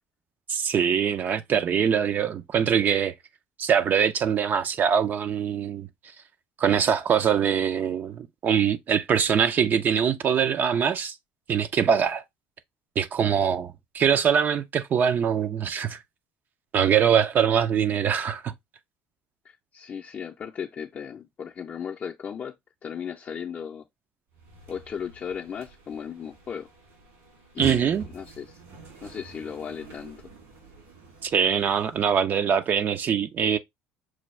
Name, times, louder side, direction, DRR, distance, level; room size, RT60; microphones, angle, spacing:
voice 1, 0.5-3.1 3.6-5.9 6.6-11.1 11.5-12.2 13.0-16.0 16.7-18.5 27.6-28.1 31.2-33.6, right 7 dB, 45° right, 0.4 m, -23 dB
voice 2, 19.4-22.5 22.8-23.9 24.7-26.7 27.5-27.9 28.1-28.6 29.0-30.2, left 7 dB, 40° left, 0.5 m, -36 dB
sound 1, 24.3-32.2, right 4 dB, 75° right, 2.4 m, -46 dB
6.1 x 2.3 x 3.1 m
supercardioid pair, 90°, 5 cm